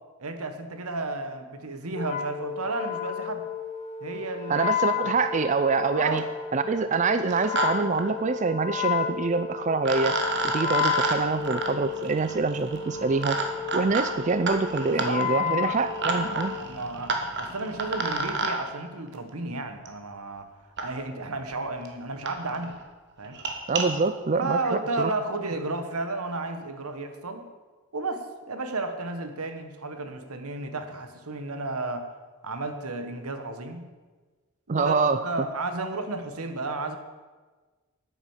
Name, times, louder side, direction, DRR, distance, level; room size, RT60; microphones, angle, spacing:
voice 1, 0.2-3.4 4.0-5.0 5.9-6.2 14.8-15.8 16.2-20.5 20.8-22.8 23.2-23.4 24.4-27.4 27.9-32.1 32.4-33.9 34.7-35.0 35.2-37.0, right 2 dB, 80° right, 8 dB, 1.4 m, -33 dB
Wind instrument woodwind instrument, 1.9-16.7, left 8 dB, 30° left, 0.8 m, -32 dB
voice 2, 4.5-6.2 6.5-10.2 10.4-13.4 13.7-16.5 23.7-25.1 34.7-35.2, right 4 dB, 35° right, 11 dB, 0.4 m, -25 dB
sound 1, 5.5-5.6 5.9-6.3 7.1-7.7 7.9-8.0 9.3-9.4 9.8-18.5 19.9-20.0 20.8-20.9 21.5-21.6 21.8-21.9 22.3-22.4 22.6-22.8 23.2-23.8, right 3 dB, 50° right, 1.5 m, -30 dB
9.9 x 9.0 x 7.3 m, 1.3 s
head